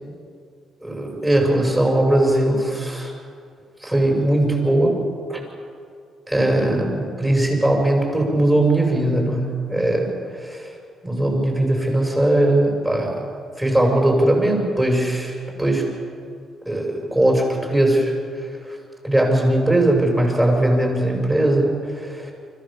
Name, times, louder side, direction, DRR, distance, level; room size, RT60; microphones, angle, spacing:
voice 1, 0.8-3.1 3.8-5.0 5.3-5.4 6.3-9.4 9.7-10.7 11.0-13.2 13.6-15.9 16.6-18.8 19.0-22.3, right 1 dB, 15° right, 0 dB, 6.4 m, -20 dB
25.0 x 15.5 x 7.4 m, 2.3 s
cardioid pair, 90°, 0 cm